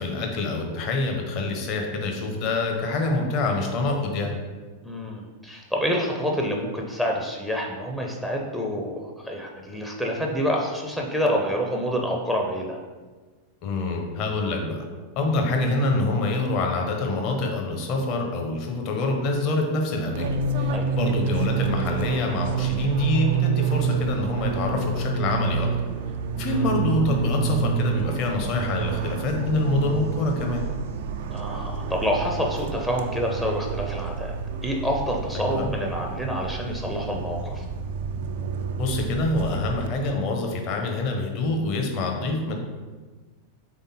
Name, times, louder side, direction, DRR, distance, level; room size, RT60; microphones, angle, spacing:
voice 1, 0.0-4.4 13.6-14.8 15.2-20.3 20.6-25.7 26.4-30.6 35.3-35.7 38.8-42.5, left 2 dB, 40° left, 2 dB, 0.8 m, -26 dB
voice 2, 4.8-12.8 20.7-20.9 26.5-26.7 31.3-34.3 34.6-37.6, equal, ahead, -1 dB, 0.5 m, -27 dB
Fixed-wing aircraft airplane, 20.1-39.9, right 6 dB, 55° right, 0.3 m, -28 dB
3.7 x 3.5 x 4.0 m, 1.3 s
figure-of-eight pair, 90°, 0 cm